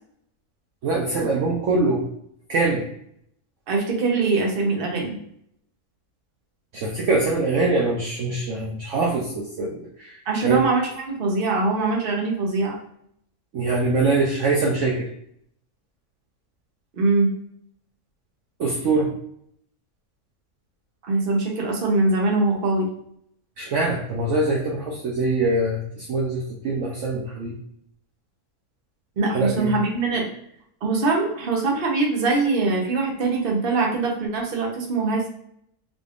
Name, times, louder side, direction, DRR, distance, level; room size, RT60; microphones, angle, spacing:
voice 1, 0.8-2.0 2.5-2.8 6.7-10.6 13.5-15.1 18.6-19.1 23.6-27.5 29.3-29.7, right 3 dB, 65° right, -2 dB, 0.9 m, -23 dB
voice 2, 3.7-5.2 10.3-12.8 16.9-17.3 21.1-22.9 29.2-30.3 30.8-35.3, right 3 dB, 45° right, 0 dB, 0.9 m, -22 dB
3.9 x 3.3 x 2.4 m, 0.71 s
omnidirectional pair, 1.6 m